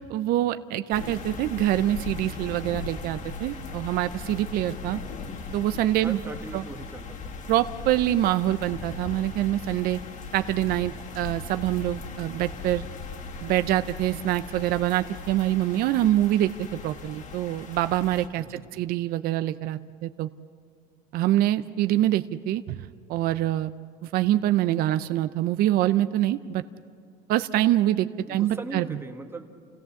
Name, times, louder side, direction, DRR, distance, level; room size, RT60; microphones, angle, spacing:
voice 1, 0.1-5.0 5.5-6.2 6.5-6.6 7.5-10.0 10.3-12.8 13.4-20.3 21.1-22.8 23.1-23.7 24.0-26.6 27.3-28.8, right 13 dB, 50° right, 11 dB, 0.6 m, -25 dB
sound 1, 0.9-18.3, left 4 dB, 40° left, 2.0 m, -39 dB
voice 2, 4.4-4.8 6.0-7.3 18.4-18.8 28.3-29.5, right 3 dB, 10° right, 5 dB, 1.6 m, -40 dB
28.5 x 16.5 x 7.0 m, 2.2 s
cardioid pair, 135°, 19 cm